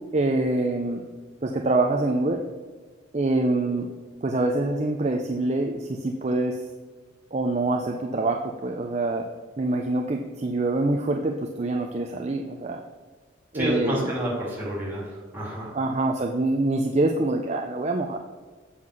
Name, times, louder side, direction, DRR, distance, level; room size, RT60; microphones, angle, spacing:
voice 1, 0.1-1.0 1.4-2.4 3.1-3.9 4.2-6.7 7.3-9.2 9.6-12.8 13.5-14.1 15.7-18.2, right 2 dB, 30° right, 3 dB, 0.5 m, -25 dB
voice 2, 13.5-15.7, equal, 10° right, -4 dB, 2.4 m, -29 dB
7.5 x 5.6 x 6.3 m, 1.4 s
head